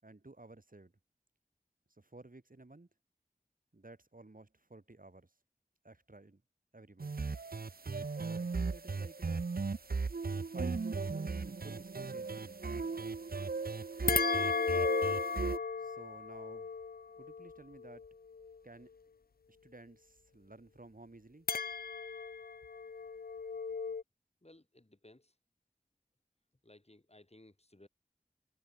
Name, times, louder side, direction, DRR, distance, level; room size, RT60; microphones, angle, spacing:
voice 1, 0.0-0.9 2.0-2.9 3.7-5.3 5.8-6.4 6.7-7.2 8.3-9.3 10.3-10.9 11.4-12.6 15.8-16.8 17.1-18.1 18.6-18.9 19.5-21.5, right 2 dB, 65° right, 6.8 m, -55 dB
sound 1, 7.0-15.6, right 4 dB, 85° right, 0.7 m, -37 dB
sound 2, 14.1-18.6 21.5-24.0, left 5 dB, 90° left, 0.5 m, -35 dB
voice 2, 24.4-25.3 26.6-27.9, left 1 dB, 45° left, 7.0 m, -60 dB
wide cardioid pair, 40°, 15 cm